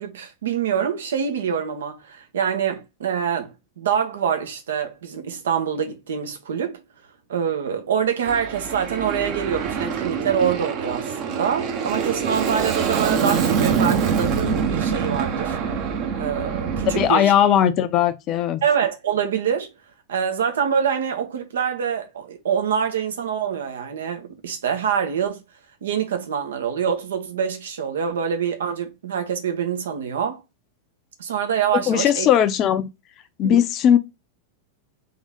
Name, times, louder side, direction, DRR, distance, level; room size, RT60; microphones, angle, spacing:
voice 1, 0.0-3.5 3.8-6.8 7.3-15.6 16.2-17.3 18.6-19.7 20.1-25.4 25.8-30.4 31.2-32.3 33.4-33.6, right 7 dB, 65° right, 1.1 m, -25 dB
Aircraft, 8.2-17.1, right 6 dB, 40° right, 1.1 m, -24 dB
voice 2, 16.7-18.6 31.7-32.9 33.4-34.0, left 10 dB, 35° left, 0.7 m, -18 dB
3.8 x 3.5 x 3.5 m
figure-of-eight pair, 90°, 0 cm